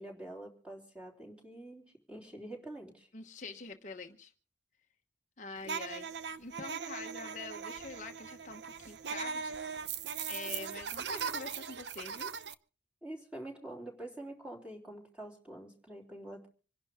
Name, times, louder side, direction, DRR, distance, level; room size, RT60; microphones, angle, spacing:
voice 1, 0.0-3.1 13.0-16.5, right 1 dB, 5° right, 3.6 m, -46 dB
voice 2, 3.1-4.3 5.4-6.1 6.4-9.5 10.3-12.3, left 4 dB, 40° left, 1.1 m, -45 dB
sound 1, 5.6-12.5, right 6 dB, 70° right, 0.8 m, -39 dB
27.0 x 11.5 x 3.6 m
head